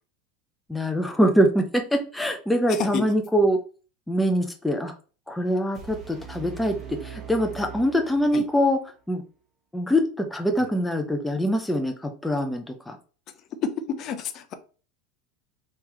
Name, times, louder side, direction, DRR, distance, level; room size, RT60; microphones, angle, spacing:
voice 1, 0.7-3.6 4.1-4.9 5.3-8.8 9.1-9.2 9.7-13.0, equal, 5° left, 5 dB, 0.6 m, -24 dB
voice 2, 2.7-3.0 8.3-8.4 13.6-14.5, left 7 dB, 50° left, 9 dB, 0.6 m, -29 dB
sound 1, 5.7-8.7, right 7 dB, 35° right, 1.6 m, -41 dB
3.6 x 2.9 x 3.0 m, 0.37 s
hypercardioid pair, 90°, 0 cm